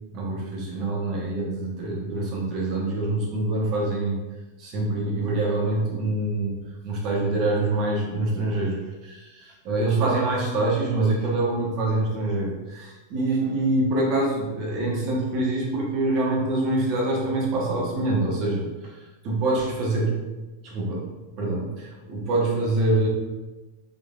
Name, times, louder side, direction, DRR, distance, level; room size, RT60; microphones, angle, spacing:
voice 1, 0.1-4.2 4.6-6.6 6.8-20.2 20.6-23.1, right 2 dB, 40° right, -3 dB, 1.1 m, -25 dB
3.7 x 3.2 x 2.5 m, 1.1 s
figure-of-eight pair, 90°, 0 cm